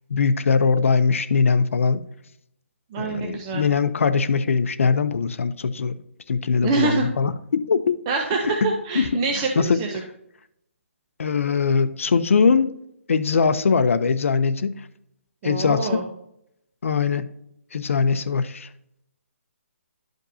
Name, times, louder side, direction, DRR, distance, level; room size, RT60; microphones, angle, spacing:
voice 1, 0.1-2.0 3.0-5.9 6.3-8.0 8.4-8.7 8.9-9.1 9.6-9.8 11.2-12.7 13.1-14.7 15.4-16.0 16.8-17.3 17.7-18.7, left 5 dB, 65° left, 11 dB, 0.6 m, -21 dB
voice 2, 2.9-3.7 6.6-7.1 8.1-10.0 15.4-16.0, right 4 dB, 20° right, 1 dB, 0.6 m, -25 dB
11.0 x 5.2 x 2.7 m, 0.77 s
hypercardioid pair, 170°, 8 cm